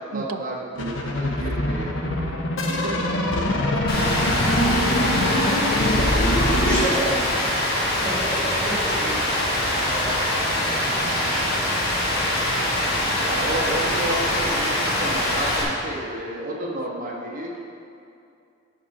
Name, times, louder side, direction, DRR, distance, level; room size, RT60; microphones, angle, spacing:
voice 1, 0.0-1.9 13.2-17.6, right 1 dB, 45° right, -4 dB, 1.3 m, -31 dB
sound 1, 0.8-6.8, left 1 dB, 65° left, 0.9 m, -23 dB
voice 2, 2.8-4.1 4.5-5.0 11.6-11.8, right 4 dB, 75° right, 11 dB, 0.4 m, -36 dB
Rain, 3.9-15.6, left 1 dB, 50° left, 1.7 m, -24 dB
voice 3, 4.7-6.1 6.6-10.1 10.7-10.8, equal, 5° left, -11 dB, 2.1 m, -32 dB
sound 2, 6.9-16.0, equal, 20° right, 1.0 m, -40 dB
10.5 x 4.2 x 5.4 m, 2.6 s
head